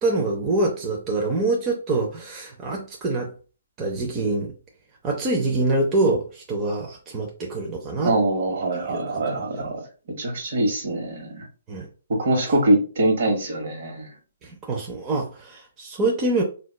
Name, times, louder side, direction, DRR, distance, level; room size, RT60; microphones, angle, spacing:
voice 1, 0.0-3.3 3.8-4.5 5.0-8.1 8.9-9.7 11.7-11.9 14.4-16.4, right 2 dB, 20° right, 0.5 m, -25 dB
voice 2, 8.0-9.9 10.2-11.5 12.1-14.1, right 1 dB, 55° right, 1.0 m, -23 dB
4.1 x 2.2 x 2.2 m
hypercardioid pair, 160°, 0 cm